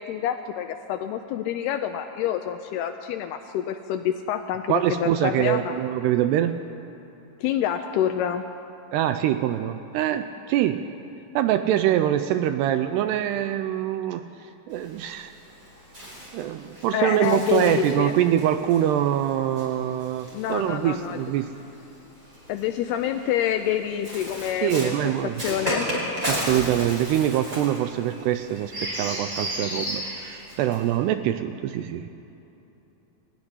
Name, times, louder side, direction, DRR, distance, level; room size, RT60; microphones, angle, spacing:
voice 1, 0.0-5.8 7.4-8.4 16.9-18.2 20.3-21.2 22.5-26.0, left 10 dB, 80° left, 7 dB, 2.4 m, -27 dB
voice 2, 4.7-6.6 8.9-10.9 11.4-14.3 14.7-15.3 16.3-21.5 24.6-25.4 26.3-32.1, right 11 dB, 80° right, 10 dB, 2.5 m, -24 dB
Bird, 14.7-21.2 22.2-31.0, equal, 20° right, 5.0 m, -34 dB
22.0 x 13.5 x 9.9 m, 3.0 s
omnidirectional pair, 5.2 m